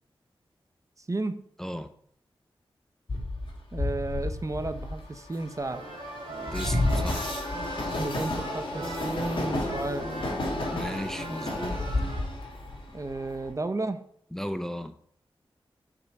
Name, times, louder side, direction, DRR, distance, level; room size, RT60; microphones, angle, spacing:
voice 1, 1.0-1.4 3.7-5.8 7.8-10.1 12.9-14.0, right 2 dB, 35° right, 10 dB, 0.7 m, -33 dB
voice 2, 1.6-1.9 6.5-7.3 10.7-11.8 14.3-14.9, equal, 5° left, 10 dB, 0.5 m, -35 dB
Train, 3.1-13.5, left 1 dB, 60° left, 2.2 m, -31 dB
sound 1, 5.6-12.2, right 2 dB, 65° right, 3.5 m, -40 dB
6.1 x 4.4 x 6.5 m, 0.64 s
cardioid pair, 50°, 10 cm